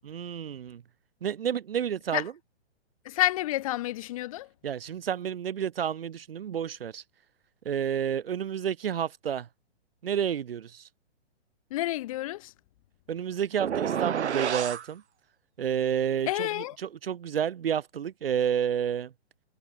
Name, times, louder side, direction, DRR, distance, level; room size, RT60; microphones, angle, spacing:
voice 1, 0.0-0.8 1.2-2.3 4.6-7.0 7.7-9.5 10.0-10.9 13.1-15.0 15.6-19.1, right 8 dB, 55° right, 2.0 m, -30 dB
voice 2, 3.0-4.5 11.7-12.5 16.3-16.7, left 15 dB, 30° left, 4.5 m, -29 dB
sound 1, 13.6-14.9, right 8 dB, 75° right, 1.5 m, -29 dB
hypercardioid pair, 170°, 34 cm